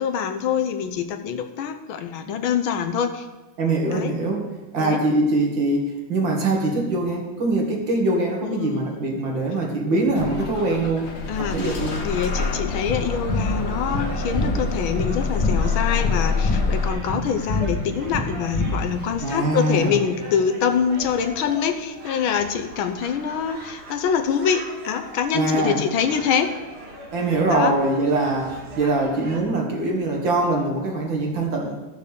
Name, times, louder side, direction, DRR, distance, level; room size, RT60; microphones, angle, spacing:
voice 1, 0.0-3.3 3.9-4.1 4.8-5.0 8.4-9.1 11.3-11.7 12.0-26.5 27.5-27.7, left 7 dB, 80° left, 8 dB, 1.6 m, -25 dB
voice 2, 3.6-4.5 4.7-11.1 11.4-12.0 19.2-20.0 25.3-25.8 27.1-31.8, right 2 dB, 65° right, 0 dB, 2.8 m, -23 dB
Bus / Engine starting, 10.1-16.9, left 4 dB, 40° left, 1.2 m, -26 dB
sound 1, 12.9-19.1, left 2 dB, 60° left, 2.3 m, -27 dB
sound 2, 13.9-29.4, right 2 dB, 85° right, 2.9 m, -40 dB
13.0 x 6.7 x 6.8 m, 1.1 s
omnidirectional pair, 2.3 m